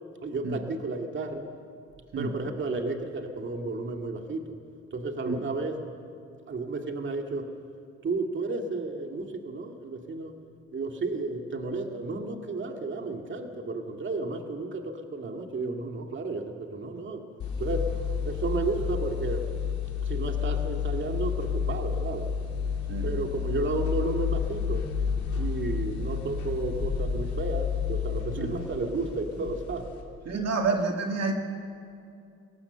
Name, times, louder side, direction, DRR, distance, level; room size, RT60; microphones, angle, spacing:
voice 1, 0.2-1.5 2.2-4.4 4.9-5.8 6.5-7.5 8.0-10.3 10.7-17.2 17.6-17.9 18.2-19.5 20.1-22.3 23.0-24.9 25.3-29.9, right 3 dB, 40° right, 3 dB, 2.1 m, -32 dB
sound 1, 17.4-30.0, left 7 dB, 75° left, 3.6 m, -30 dB
voice 2, 30.3-31.3, right 3 dB, 55° right, 3 dB, 2.0 m, -29 dB
22.5 x 17.5 x 6.9 m, 2.5 s
cardioid pair, 90°, 30 cm